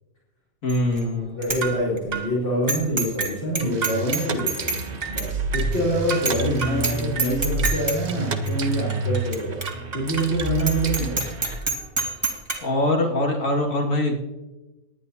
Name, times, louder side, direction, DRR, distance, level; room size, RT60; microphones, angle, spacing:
voice 1, 0.6-1.4 6.4-7.1 12.6-14.2, left 1 dB, 80° left, -1 dB, 2.5 m, -24 dB
Bicycle bell, 0.7-1.0 1.4-1.6 2.0-2.1 2.7-3.3 3.5-4.8 5.2-5.3 5.7-5.8 6.2-6.5 6.8-6.9 7.2-8.0 8.4-8.5 9.3-9.4 9.6-9.7 10.1-10.2 10.6-12.5, right 3 dB, 20° right, 1.8 m, -26 dB
voice 2, 1.4-9.6 9.9-11.2, equal, 60° left, -7 dB, 4.2 m, -26 dB
sound 1, 1.6-1.8 2.1-2.3 2.7-2.9 3.2-3.4 3.8-4.0 4.4-4.6 5.0-5.2 5.5-5.8 6.1-6.3 6.6-6.8 7.2-7.3 7.6-7.9 8.6-9.3 9.7-10.4 11.0-11.6 12.0-12.8, right 6 dB, 65° right, 2.9 m, -33 dB
sound 2, 3.6-11.6, right 3 dB, 40° right, 0.8 m, -30 dB
19.0 x 11.0 x 2.8 m, 1.1 s
omnidirectional pair, 1.4 m